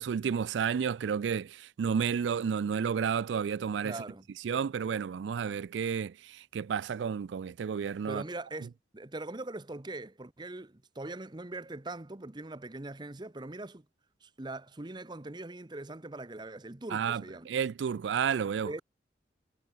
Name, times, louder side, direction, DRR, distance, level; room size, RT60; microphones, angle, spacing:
voice 1, 0.0-4.0 4.4-8.2 16.9-18.8, right 7 dB, 85° right, 0.4 m, -31 dB
voice 2, 3.8-4.2 8.1-13.8 14.2-17.5 18.7-18.8, right 2 dB, 25° right, 0.9 m, -41 dB
head